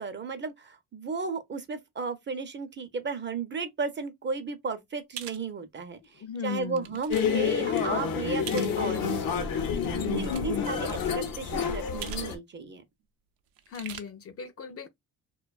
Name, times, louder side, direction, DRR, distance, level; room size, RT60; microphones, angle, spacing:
voice 1, 0.0-6.0 6.4-9.2 10.2-12.8, right 4 dB, 30° right, 0.5 m, -34 dB
sound 1, 5.2-5.4 6.0-6.1 6.6-7.2 7.5-7.8 8.5-8.8 9.9-10.6 10.9-11.0 12.0-12.3 12.6-12.7 13.6-14.0, right 10 dB, 80° right, 0.5 m, -41 dB
voice 2, 6.2-6.9 9.9-10.8 13.7-14.9, left 6 dB, 40° left, 0.4 m, -37 dB
sound 2, 7.1-12.4, left 6 dB, 75° left, 0.7 m, -28 dB
2.5 x 2.2 x 2.3 m
cardioid pair, 95°, 35 cm